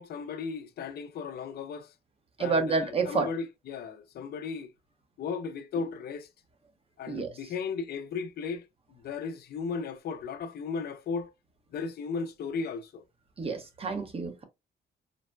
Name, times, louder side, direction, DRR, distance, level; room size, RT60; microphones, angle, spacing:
voice 1, 0.0-1.9 2.4-4.7 5.2-6.3 7.0-11.3 11.7-13.0, left 5 dB, 60° left, 0.5 m, -36 dB
voice 2, 2.4-3.3 7.1-7.3 13.4-14.4, right 4 dB, 30° right, 0.7 m, -29 dB
3.9 x 2.1 x 2.2 m
cardioid pair, 100°, 18 cm